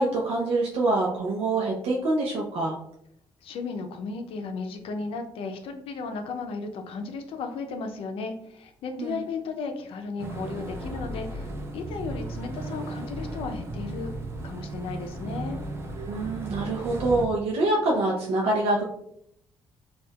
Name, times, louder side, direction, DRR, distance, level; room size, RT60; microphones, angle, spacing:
voice 1, 0.0-2.8 9.0-9.2 16.0-18.8, right 2 dB, 80° right, -2 dB, 0.6 m, -25 dB
voice 2, 3.4-14.1 14.4-15.6, left 4 dB, 75° left, 5 dB, 0.5 m, -35 dB
sound 1, 10.2-17.3, right 2 dB, 25° right, 0.4 m, -35 dB
4.4 x 2.3 x 2.3 m, 0.73 s
cardioid pair, 140°, 10 cm